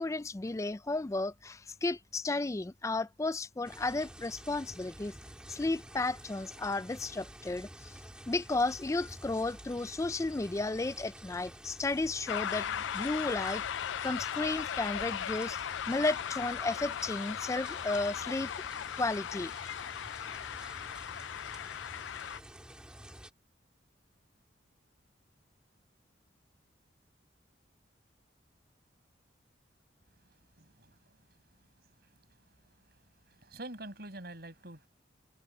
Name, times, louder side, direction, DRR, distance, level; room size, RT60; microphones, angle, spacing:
voice 1, 0.0-5.1 5.5-7.9 8.3-12.7 12.9-13.6 14.0-15.6 15.9-18.5 19.0-19.5, left 2 dB, 15° left, 0.3 m, -33 dB
sound 1, 3.6-23.3, right 1 dB, 5° right, 1.8 m, -50 dB
sound 2, 12.3-22.4, left 9 dB, 85° left, 0.4 m, -37 dB
voice 2, 30.2-31.3 32.0-32.1 32.9-33.0 33.3-34.9, right 2 dB, 55° right, 6.8 m, -47 dB
head